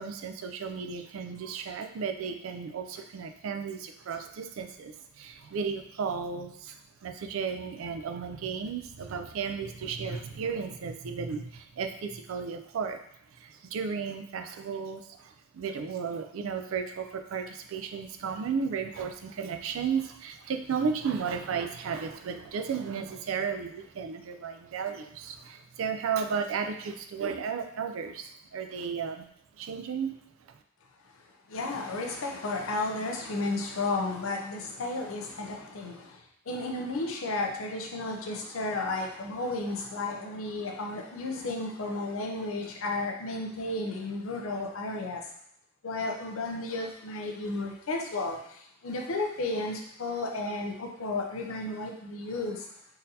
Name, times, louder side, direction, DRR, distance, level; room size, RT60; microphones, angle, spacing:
voice 1, 0.0-13.0 13.3-29.3 29.6-30.2, right 6 dB, 75° right, 6 dB, 0.4 m, -34 dB
voice 2, 31.5-45.3 45.8-52.7, left 2 dB, 80° left, 1 dB, 0.6 m, -33 dB
3.9 x 2.6 x 2.7 m, 0.68 s
head